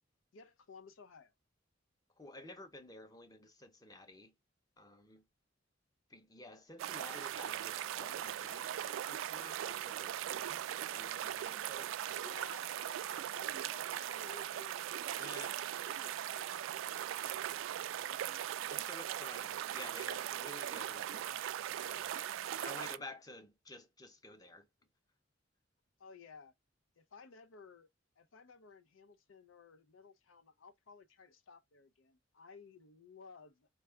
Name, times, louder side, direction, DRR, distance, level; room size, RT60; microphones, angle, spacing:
voice 1, 0.3-1.3 12.1-17.2 26.0-26.5 27.0-27.9 28.2-33.7, left 4 dB, 85° left, 0.6 m, -57 dB
voice 2, 2.2-4.3 4.8-5.3 6.1-12.2 15.2-15.5 18.7-21.5 21.7-24.7, left 2 dB, 20° left, 0.7 m, -52 dB
sound 1, 6.8-23.0, right 11 dB, 85° right, 0.3 m, -39 dB
4.5 x 2.4 x 3.3 m
head